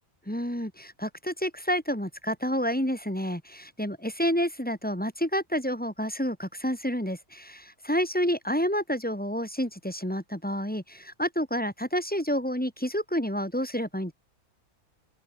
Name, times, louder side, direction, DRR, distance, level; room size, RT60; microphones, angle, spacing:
voice 1, 0.3-14.1, equal, 5° left, 3.8 m, -29 dB
open air
omnidirectional pair, 1.5 m